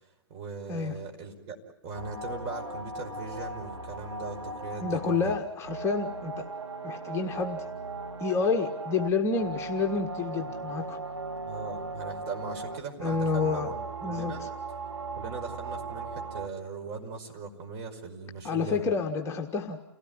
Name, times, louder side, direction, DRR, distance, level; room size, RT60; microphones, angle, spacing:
voice 1, 0.3-1.6 1.8-5.3 11.4-14.4 15.2-18.9, right 4 dB, 35° right, 2 dB, 5.3 m, -39 dB
sound 1, 1.9-16.5, right 3 dB, 90° right, 2.3 m, -38 dB
voice 2, 4.8-6.5 6.8-7.6 8.2-11.0 13.0-13.7 14.0-14.5 18.4-19.8, left 4 dB, 20° left, 2 dB, 1.6 m, -29 dB
29.5 x 17.5 x 9.6 m, 0.89 s
figure-of-eight pair, 125°, 14 cm